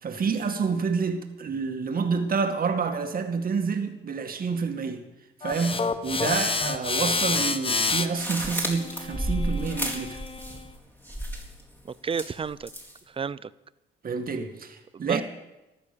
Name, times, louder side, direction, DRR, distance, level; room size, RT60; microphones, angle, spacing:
voice 1, 0.0-5.0 5.4-10.2 14.0-15.2, right 5 dB, 45° right, 2.1 m, -28 dB
sound 1, 5.4-10.6, left 4 dB, 25° left, 1.1 m, -29 dB
sound 2, 8.1-10.8 11.0-11.6 12.1-13.0, equal, 10° left, 4.1 m, -32 dB
voice 2, 11.8-12.7 13.1-13.5 14.9-15.2, right 6 dB, 30° right, 0.6 m, -31 dB
15.0 x 12.5 x 6.9 m
cardioid pair, 90°, 20 cm